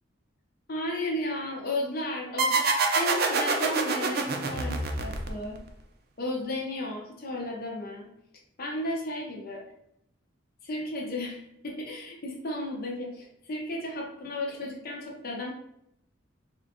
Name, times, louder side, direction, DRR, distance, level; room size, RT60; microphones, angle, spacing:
voice 1, 0.7-5.6 6.2-8.1 8.6-9.6 10.6-15.5, left 1 dB, 50° left, -2 dB, 0.7 m, -34 dB
sound 1, 2.4-5.7, right 3 dB, 55° right, 0.5 m, -26 dB
3.7 x 2.4 x 3.5 m, 0.77 s
head